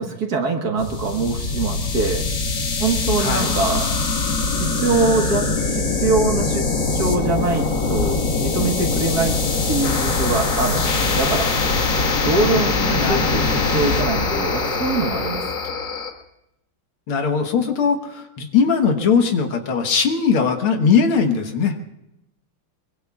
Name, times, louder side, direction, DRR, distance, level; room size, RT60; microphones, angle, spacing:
voice 1, 0.0-2.2 2.8-3.9 4.6-6.7 6.9-9.4 9.7-11.5 12.2-15.4, right 3 dB, 50° right, 2 dB, 1.9 m, -23 dB
sound 1, 0.8-16.1, left 3 dB, 60° left, 2.3 m, -22 dB
voice 2, 3.2-3.5 13.0-13.4 17.1-21.8, left 6 dB, 80° left, 5 dB, 2.2 m, -20 dB
23.5 x 23.5 x 2.4 m, 0.86 s
omnidirectional pair, 2.3 m